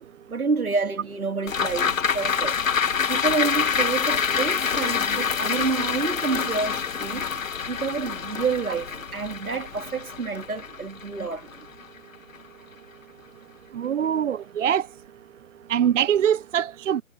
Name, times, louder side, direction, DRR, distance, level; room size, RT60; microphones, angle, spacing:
voice 1, 0.3-2.7 3.1-11.5, right 4 dB, 85° right, 2.6 m, -28 dB
sound 1, 1.5-12.0 12.3-12.4, left 6 dB, 65° left, 2.1 m, -26 dB
voice 2, 13.8-14.8 15.7-17.0, right 9 dB, 60° right, 0.6 m, -23 dB
figure-of-eight pair, 140°, 42 cm